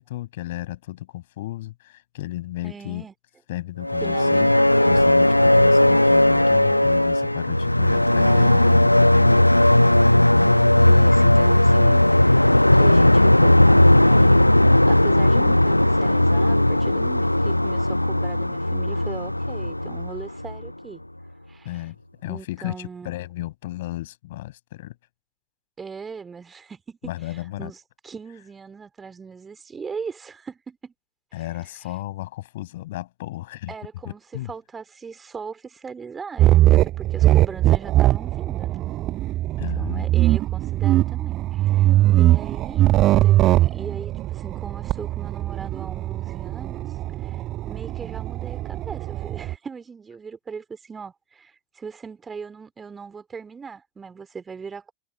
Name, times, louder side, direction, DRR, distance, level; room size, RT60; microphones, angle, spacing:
voice 1, 0.0-3.1 3.5-4.5 4.8-9.7 21.6-22.0 22.2-25.0 27.0-27.7 31.3-33.7 34.1-34.5 39.6-40.1, left 16 dB, 55° left, 7.2 m, -34 dB
voice 2, 2.6-3.1 4.0-4.5 7.9-8.8 10.8-12.4 12.8-21.0 21.5-21.8 22.3-23.1 25.8-30.9 33.7-34.2 34.5-38.8 39.8-43.4 43.6-46.9 47.2-54.9, right 5 dB, 15° right, 3.9 m, -39 dB
sound 1, 3.8-20.7, left 1 dB, 85° left, 1.1 m, -17 dB
sound 2, 36.4-49.5, right 15 dB, 35° right, 0.6 m, -21 dB
figure-of-eight pair, 90°, 0 cm